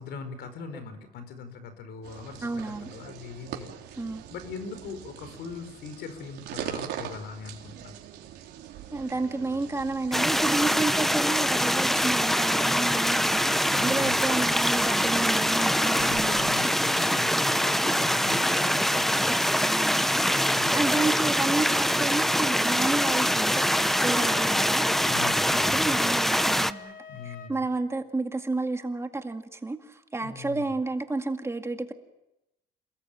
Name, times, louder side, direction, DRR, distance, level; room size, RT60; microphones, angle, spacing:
voice 1, 0.0-4.0 4.3-7.9 13.7-14.2 15.9-19.4 20.3-20.8 24.2-24.4 25.1-25.9 27.1-27.7 30.2-30.7, left 5 dB, 75° left, 10 dB, 4.8 m, -41 dB
sound 1, 2.0-16.6, right 10 dB, 80° right, 3.8 m, -43 dB
voice 2, 2.4-2.9 4.0-4.2 8.9-16.6 19.7-25.1 25.5-27.0 27.2-31.9, right 3 dB, 15° right, 6 dB, 2.0 m, -31 dB
sound 2, 10.1-26.7, equal, ahead, 0.9 m, -24 dB
Wind instrument woodwind instrument, 23.6-27.5, left 6 dB, 55° left, 2.8 m, -45 dB
28.0 x 20.5 x 9.1 m, 0.92 s
cardioid pair, 110°, 17 cm